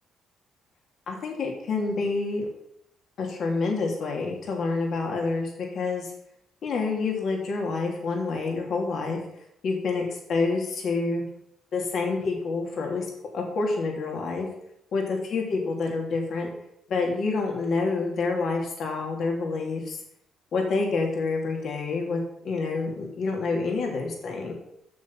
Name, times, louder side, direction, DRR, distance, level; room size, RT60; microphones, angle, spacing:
voice 1, 1.1-2.5 3.2-6.1 6.6-9.2 9.6-11.2 11.7-13.0 13.3-14.5 14.9-16.5 16.9-20.0 20.5-24.5, left 3 dB, 65° left, 0 dB, 3.0 m, -28 dB
11.5 x 7.2 x 5.9 m, 0.77 s
cardioid pair, 90°, 0 cm